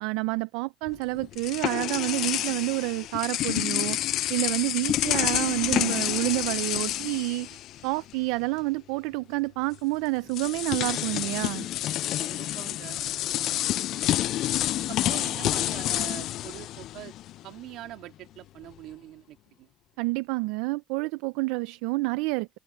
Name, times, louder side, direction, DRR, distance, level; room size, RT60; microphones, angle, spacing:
voice 1, 0.0-4.0 4.3-11.7 20.0-22.5, right 24 dB, 85° right, 0.4 m, -29 dB
sound 1, 0.9-8.1 8.4-8.6 9.7-9.8 10.3-17.4, left 14 dB, 60° left, 0.4 m, -29 dB
voice 2, 12.2-13.0 14.6-17.1 17.4-19.7, right 15 dB, 65° right, 2.7 m, -43 dB
cardioid pair, 110°, 0 cm